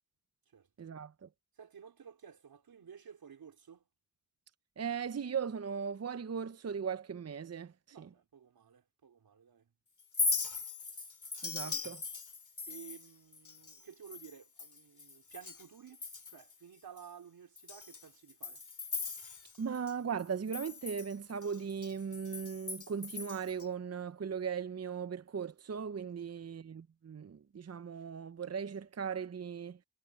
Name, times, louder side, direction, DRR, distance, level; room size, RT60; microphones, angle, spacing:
voice 1, 0.8-1.3 4.8-8.1 11.4-12.0 19.6-29.8, right 6 dB, 45° right, 0.7 m, -38 dB
voice 2, 1.6-3.8 7.9-9.7 11.7-11.8 12.7-18.6 26.4-26.6, right 7 dB, 90° right, 4.0 m, -54 dB
Chink clink, 10.0-15.7 15.9-16.5 17.0-17.1 17.6-19.9 20.2-23.7, left 4 dB, 55° left, 2.2 m, -39 dB
cardioid pair, 40°, 35 cm